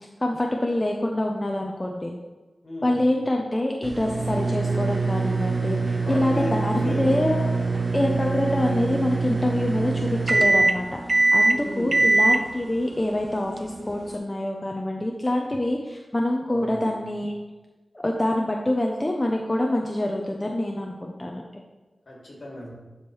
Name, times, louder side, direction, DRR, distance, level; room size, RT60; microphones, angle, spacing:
voice 1, 0.2-2.1 2.8-7.4 7.9-17.4 17.9-21.6, left 1 dB, 25° left, 1 dB, 0.7 m, -26 dB
voice 2, 2.6-3.1 6.0-7.8 11.6-12.1 16.5-17.0 22.1-22.7, left 1 dB, 55° left, -3 dB, 2.5 m, -35 dB
sound 1, 3.8-14.2, right 3 dB, 45° right, 0.5 m, -23 dB
12.0 x 4.7 x 3.2 m, 1.2 s
wide cardioid pair, 85°, 0 cm